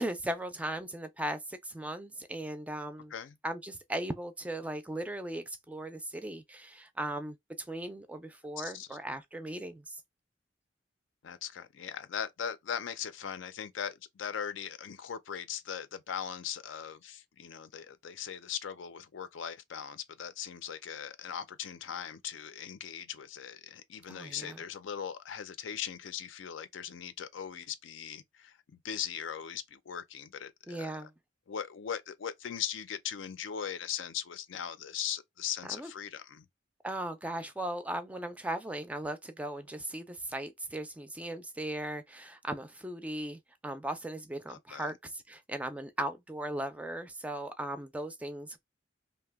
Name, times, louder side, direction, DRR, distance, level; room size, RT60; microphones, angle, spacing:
voice 1, 0.0-3.1 3.4-10.0 24.1-24.6 30.7-31.1 35.7-35.9 36.8-48.6, right 1 dB, 10° right, 0.3 m, -38 dB
voice 2, 8.6-9.0 11.2-31.1 31.5-36.4 44.5-44.9, left 8 dB, 85° left, 0.4 m, -39 dB
2.8 x 2.1 x 3.4 m
head